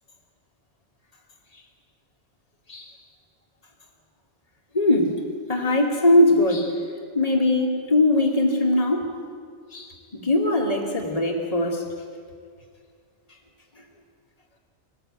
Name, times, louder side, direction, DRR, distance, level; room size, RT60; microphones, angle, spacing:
voice 1, 4.7-5.2 5.5-6.9 7.1-9.1 9.7-11.9, left 1 dB, 30° left, 1 dB, 2.5 m, -21 dB
25.0 x 19.0 x 8.9 m, 2.2 s
omnidirectional pair, 1.2 m